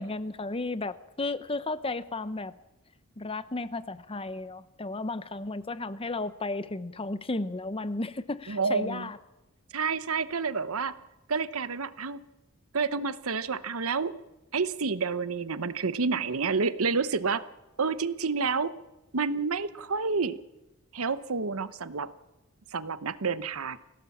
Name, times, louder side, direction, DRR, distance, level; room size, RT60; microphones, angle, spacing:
voice 1, 0.0-2.5 3.2-9.2, left 2 dB, 25° left, 14 dB, 0.9 m, -34 dB
voice 2, 8.5-9.1 9.7-11.0 11.3-12.2 12.7-14.2 14.5-17.4 17.8-18.7 19.1-20.4 20.9-22.1 22.7-23.8, right 4 dB, 75° right, 14 dB, 1.0 m, -29 dB
24.5 x 17.0 x 7.2 m, 0.98 s
head